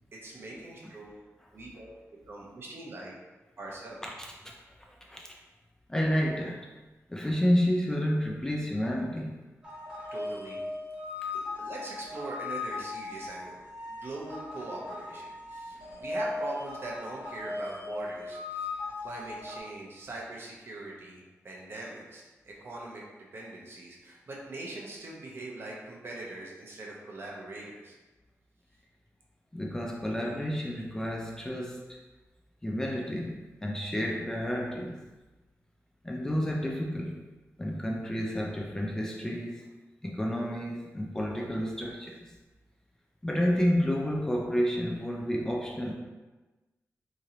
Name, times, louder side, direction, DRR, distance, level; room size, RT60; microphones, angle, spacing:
voice 1, 0.2-1.2 1.5-1.9 2.3-3.1 3.6-4.0 10.1-10.6 11.3-13.6 13.9-18.7 19.0-23.0 23.3-28.0, right 2 dB, 45° right, -3 dB, 0.8 m, -42 dB
voice 2, 4.0-4.5 4.8-5.3 5.9-6.7 7.1-9.4 29.5-32.0 32.6-35.0 36.0-37.2 37.6-39.7 40.0-42.4 43.2-46.0, equal, 10° left, -1 dB, 0.3 m, -30 dB
sound 1, 9.6-19.6, left 2 dB, 10° right, 1.4 m, -38 dB
3.0 x 2.8 x 3.8 m, 1.2 s
wide cardioid pair, 145°, 5 cm